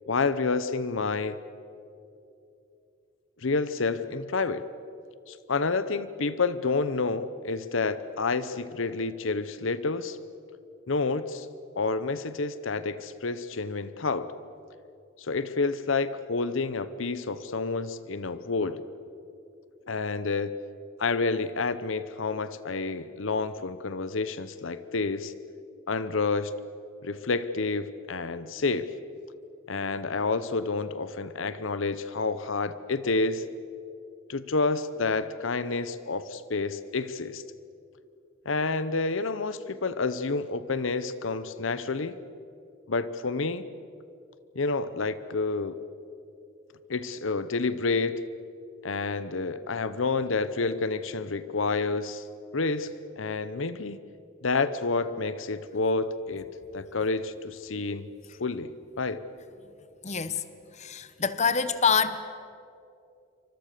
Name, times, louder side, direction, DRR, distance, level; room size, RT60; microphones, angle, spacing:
voice 1, 0.1-1.4 3.4-4.7 5.3-10.2 10.9-11.5 11.8-14.3 15.2-18.8 19.9-20.5 21.0-25.3 25.9-26.5 27.0-28.9 29.7-33.4 34.3-37.4 38.4-42.2 42.9-43.6 44.5-45.8 46.9-48.3 48.8-52.3 52.5-52.9 53.2-54.0 54.4-56.5 56.7-58.1 58.4-59.2, left 3 dB, 70° left, 14 dB, 0.8 m, -29 dB
voice 2, 60.0-60.4 60.8-62.2, left 6 dB, 35° left, 13 dB, 0.9 m, -25 dB
28.0 x 25.0 x 6.7 m, 2.7 s
head